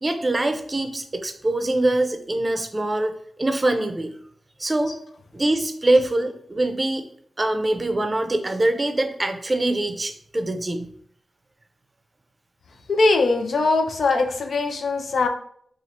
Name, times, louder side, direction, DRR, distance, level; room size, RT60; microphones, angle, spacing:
voice 1, 0.0-3.1 3.4-4.1 4.6-5.0 5.3-7.0 7.4-10.9, right 2 dB, 30° right, 7 dB, 0.5 m, -23 dB
voice 2, 12.9-15.3, left 3 dB, 75° left, 5 dB, 0.4 m, -21 dB
2.8 x 2.4 x 4.1 m, 0.63 s
cardioid pair, 65°, 0 cm